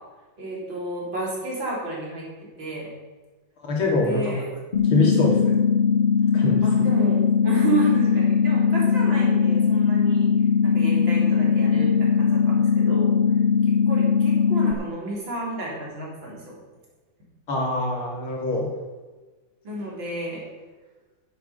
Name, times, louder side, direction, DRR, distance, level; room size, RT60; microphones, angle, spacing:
voice 1, 0.4-2.3 2.6-2.9 4.0-4.5 6.6-10.3 10.6-13.2 13.7-16.6 19.6-20.4, right 2 dB, 65° right, -4 dB, 4.3 m, -31 dB
voice 2, 3.6-4.3 4.9-5.6 6.3-6.9 17.5-18.7, left 2 dB, 90° left, -1 dB, 3.6 m, -24 dB
sound 1, 4.7-14.7, left 6 dB, 45° left, 0.8 m, -20 dB
10.5 x 10.5 x 5.6 m, 1.3 s
omnidirectional pair, 2.2 m